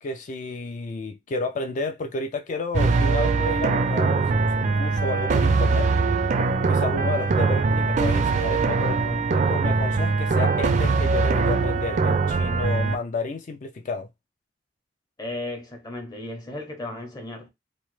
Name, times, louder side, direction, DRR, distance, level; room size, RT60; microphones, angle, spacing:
voice 1, 0.0-5.9 6.7-14.1, left 3 dB, 45° left, 0.3 m, -31 dB
sound 1, 2.7-13.0, right 4 dB, 40° right, 0.4 m, -22 dB
voice 2, 15.2-17.5, left 2 dB, 25° left, 0.7 m, -35 dB
3.0 x 2.0 x 3.1 m
head